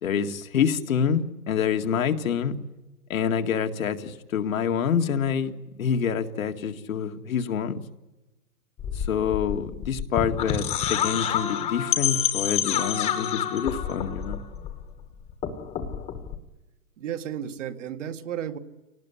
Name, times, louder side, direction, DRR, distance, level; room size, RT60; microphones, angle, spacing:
voice 1, 0.0-2.5 3.1-5.5 5.8-7.8 9.0-14.4, left 7 dB, 60° left, 6 dB, 2.1 m, -27 dB
sound 1, 8.8-15.0 15.3-16.4, left 9 dB, 15° left, 1.5 m, -28 dB
voice 2, 17.0-18.6, right 9 dB, 55° right, 7 dB, 2.1 m, -33 dB
28.5 x 18.5 x 9.9 m, 1.1 s
hypercardioid pair, 155°, 45 cm